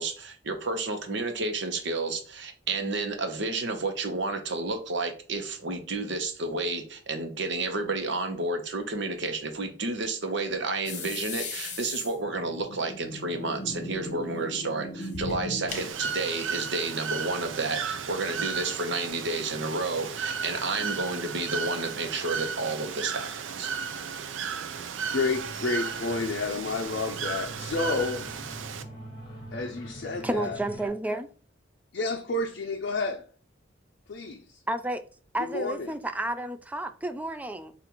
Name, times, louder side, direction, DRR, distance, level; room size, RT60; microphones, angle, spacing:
voice 1, 0.0-23.3 23.6-23.7, right 3 dB, 65° right, 0.9 m, -31 dB
sound 1, 10.8-15.9, left 2 dB, 40° left, 1.0 m, -37 dB
Bird / Water, 15.7-28.8, right 6 dB, 85° right, 0.5 m, -34 dB
voice 2, 25.1-28.3 29.5-30.6 31.9-33.3 34.1-34.6 35.4-36.0, left 3 dB, 60° left, 0.5 m, -30 dB
sound 2, 25.2-30.9, right 1 dB, 20° left, 1.2 m, -43 dB
voice 3, 30.2-31.3 34.7-35.0 35.3-37.7, right 1 dB, 10° right, 0.3 m, -31 dB
7.1 x 2.5 x 3.0 m
head